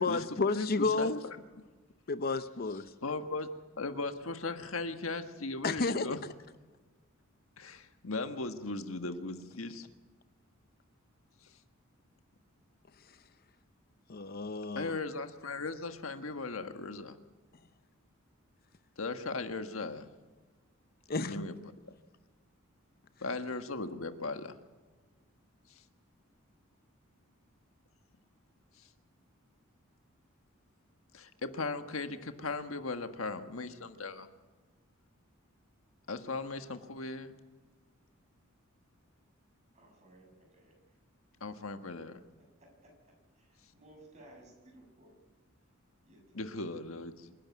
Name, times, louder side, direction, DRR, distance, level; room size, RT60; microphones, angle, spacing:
voice 1, 0.0-1.2 2.1-2.9 5.6-6.1 14.1-15.0 21.1-21.4, left 3 dB, 50° left, 12 dB, 0.7 m, -31 dB
voice 2, 0.5-1.4 3.0-3.5 3.8-6.2 7.6-9.9 14.7-17.2 19.0-20.1 21.2-21.6 23.2-24.6 31.1-34.3 36.1-37.3 41.4-42.2 46.3-47.3, left 3 dB, 85° left, 8 dB, 1.5 m, -38 dB
voice 3, 39.7-40.8 42.6-42.9 43.4-45.1 46.0-46.6, right 1 dB, 35° right, 1 dB, 7.4 m, -58 dB
26.5 x 11.5 x 9.4 m, 1.3 s
head